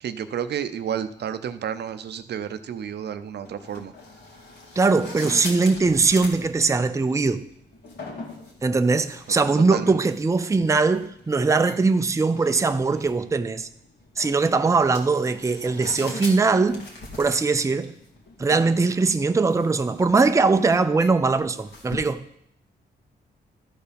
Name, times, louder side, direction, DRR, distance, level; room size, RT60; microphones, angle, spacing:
voice 1, 0.0-3.9 9.7-10.0, right 8 dB, 65° right, 0.6 m, -31 dB
sound 1, 3.4-22.2, left 2 dB, 65° left, 2.2 m, -42 dB
voice 2, 4.8-7.5 8.6-13.7 14.2-16.9 17.2-17.9 18.4-22.3, right 4 dB, 15° right, 0.5 m, -21 dB
13.0 x 4.5 x 5.2 m
cardioid pair, 75°, 18 cm